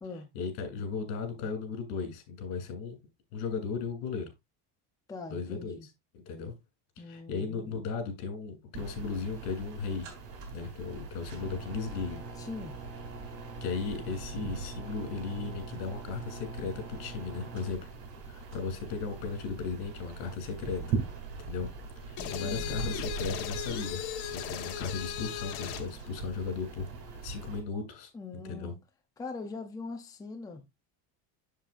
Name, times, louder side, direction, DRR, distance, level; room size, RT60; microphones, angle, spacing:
voice 1, 0.3-3.0 3.3-4.3 5.3-5.8 6.1-6.5 7.0-10.1 10.5-12.2 13.6-17.8 18.3-21.0 21.5-21.7 22.0-24.0 24.3-28.1 28.5-28.7, left 5 dB, 85° left, 3.3 m, -36 dB
voice 2, 5.1-5.9 7.0-7.7 12.4-12.7 22.2-22.8 28.1-28.8 29.2-30.6, left 3 dB, 10° left, 0.6 m, -42 dB
sound 1, 8.7-27.6, right 4 dB, 60° right, 3.4 m, -41 dB
sound 2, 22.2-25.9, left 10 dB, 65° left, 1.5 m, -37 dB
7.4 x 7.4 x 2.5 m
cardioid pair, 170°, 43 cm